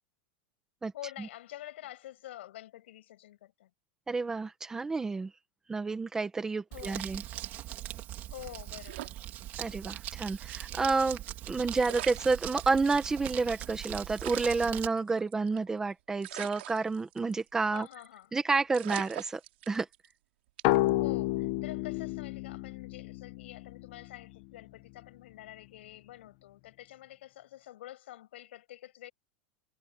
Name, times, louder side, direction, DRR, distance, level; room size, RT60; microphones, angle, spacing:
voice 1, 0.9-3.7 6.7-7.2 8.2-9.1 17.7-18.3 21.0-29.1, left 14 dB, 80° left, 7.8 m, -47 dB
voice 2, 4.1-5.3 5.7-7.2 9.6-11.2 11.5-17.9 18.3-19.4 19.7-19.9, right 4 dB, 10° right, 1.8 m, -30 dB
Crumpling crinkling, 6.7-14.9, right 14 dB, 30° right, 3.7 m, -41 dB
sound 1, 8.8-10.0 10.3-10.4 11.4-11.5 11.8-12.9 13.4-13.5 13.7-13.8 14.2-15.7 16.2-17.5 17.8-18.1 18.4-18.5 18.7-20.1 20.6-20.9, right 16 dB, 70° right, 4.1 m, -43 dB
sound 2, 20.6-24.1, left 18 dB, 45° left, 1.4 m, -30 dB
supercardioid pair, 170°, 6 cm